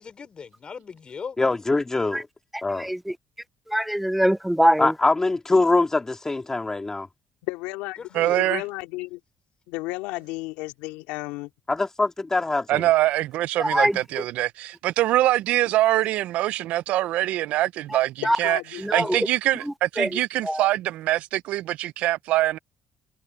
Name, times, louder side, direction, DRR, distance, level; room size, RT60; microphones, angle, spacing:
voice 1, 0.0-1.4 8.0-8.4, left 6 dB, 45° left, 4.7 m, -38 dB
voice 2, 1.4-2.3 2.6-2.9 4.8-7.1 11.7-12.8, left 2 dB, 25° left, 3.0 m, -23 dB
voice 3, 3.7-4.9 13.6-13.9 18.3-18.4 18.8-19.2 20.0-20.1 20.5-20.6, equal, 5° right, 0.4 m, -21 dB
voice 4, 7.4-9.2 9.7-11.5 18.2-19.1, left 20 dB, 90° left, 2.5 m, -33 dB
voice 5, 8.1-8.6 12.7-22.6, right 15 dB, 80° right, 0.6 m, -24 dB
supercardioid pair, 60°, 2 cm